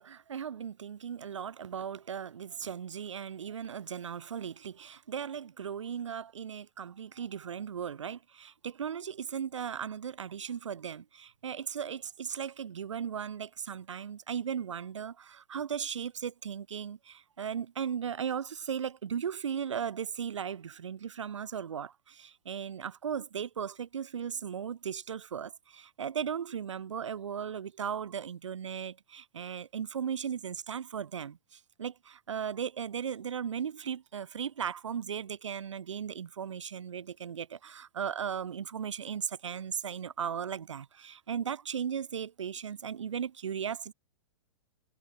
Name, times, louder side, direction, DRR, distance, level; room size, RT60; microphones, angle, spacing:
voice 1, 0.0-43.9, right 8 dB, 80° right, 2.2 m, -37 dB
hypercardioid pair, 120°, 15 cm